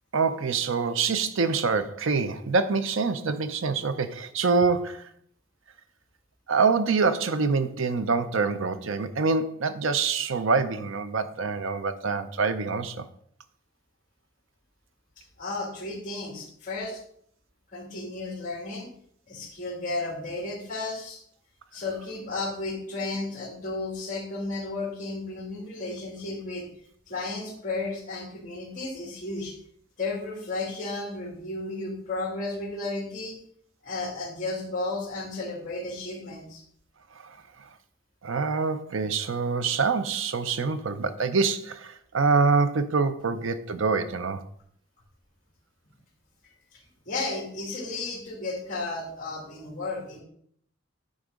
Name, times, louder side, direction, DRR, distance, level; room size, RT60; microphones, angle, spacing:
voice 1, 0.1-5.1 6.5-13.1 37.2-37.7 38.2-44.4, right 4 dB, 60° right, 0.6 m, -25 dB
voice 2, 15.4-17.0 17.7-18.9 19.3-21.2 21.7-26.7 27.1-29.5 30.0-33.4 33.8-36.6 46.4-46.8 47.1-50.2, left 2 dB, 35° left, 2.3 m, -33 dB
9.6 x 3.6 x 5.1 m
head